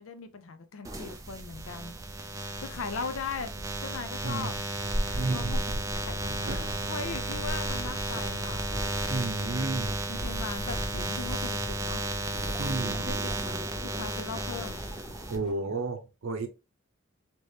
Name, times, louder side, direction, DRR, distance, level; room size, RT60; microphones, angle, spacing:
voice 1, 0.0-1.9 2.4-4.6 5.0-8.7 10.1-12.1 12.9-14.8, left 4 dB, 75° left, 0.5 m, -39 dB
sound 1, 0.8-15.4, right 2 dB, 15° right, 0.3 m, -34 dB
sound 2, 4.8-15.5, equal, 50° left, 1.6 m, -37 dB
voice 2, 5.1-5.6 6.3-6.6 9.1-10.0 12.6-13.0 15.3-16.5, right 3 dB, 70° right, 0.6 m, -32 dB
sound 3, 12.0-15.9, left 1 dB, 10° left, 0.8 m, -47 dB
3.2 x 3.0 x 2.7 m
head